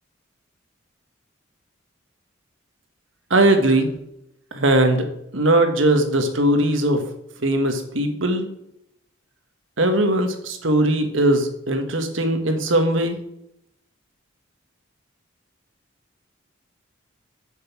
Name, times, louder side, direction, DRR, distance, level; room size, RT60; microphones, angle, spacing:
voice 1, 3.3-3.9 4.5-5.1 5.3-7.0 7.4-8.5 9.8-13.2, right 1 dB, 80° right, 6 dB, 1.4 m, -19 dB
7.1 x 6.5 x 6.0 m, 0.78 s
head